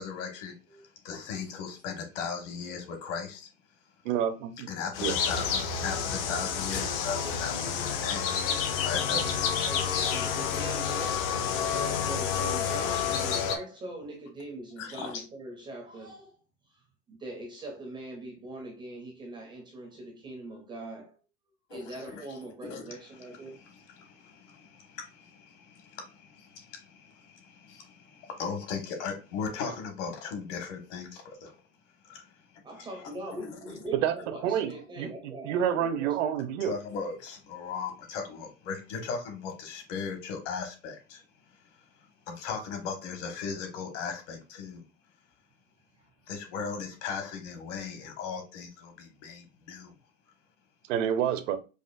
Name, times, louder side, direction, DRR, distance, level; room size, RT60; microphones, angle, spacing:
voice 1, 0.0-0.5 1.0-3.5 4.7-9.5 10.9-11.0 14.8-15.2 21.7-22.2 22.6-22.9 23.2-31.5 32.0-32.3 32.8-32.9 33.4-33.6 36.6-41.2 41.5-41.6 42.3-44.8 46.3-49.9, left 5 dB, 60° left, 1.5 m, -38 dB
voice 2, 4.0-4.7 5.0-5.1 34.0-34.1 34.4-34.7 35.0-35.1 35.4-36.7 50.9-51.6, right 9 dB, 65° right, 0.7 m, -28 dB
sound 1, 4.9-13.6, left 7 dB, 45° left, 0.6 m, -29 dB
voice 3, 8.4-8.8 9.6-16.4 16.7-16.8 17.1-21.2 21.7-23.6 32.6-36.5 46.0-46.1, right 2 dB, 10° right, 0.5 m, -42 dB
4.9 x 2.4 x 2.4 m
supercardioid pair, 175°, 40 cm